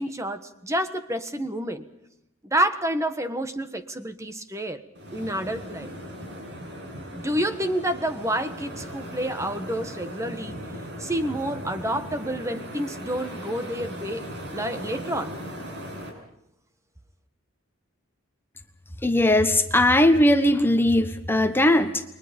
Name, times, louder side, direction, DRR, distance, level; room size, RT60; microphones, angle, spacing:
voice 1, 0.0-1.8 2.4-4.8 5.1-5.9 7.1-10.5 11.0-15.3, right 1 dB, 15° right, 9 dB, 1.4 m, -29 dB
sound 1, 4.9-16.1, equal, 55° right, 7.3 m, -38 dB
voice 2, 19.0-22.0, left 1 dB, 10° left, 8 dB, 1.3 m, -19 dB
29.5 x 22.5 x 5.3 m, 0.80 s
head